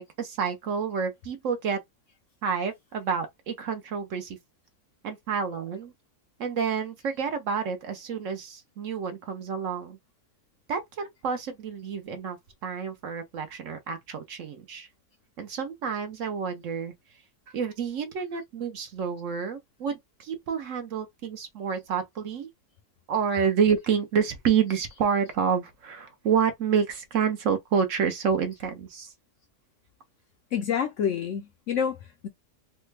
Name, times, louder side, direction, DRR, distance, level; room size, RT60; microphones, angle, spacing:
voice 1, 0.0-1.8 2.4-4.4 5.0-5.9 6.4-10.0 10.7-14.9 15.4-16.9 17.5-22.5 23.1-29.1, right 6 dB, 65° right, 0.9 m, -29 dB
voice 2, 30.5-32.3, left 8 dB, 65° left, 0.8 m, -28 dB
3.2 x 2.1 x 3.2 m
omnidirectional pair, 1.7 m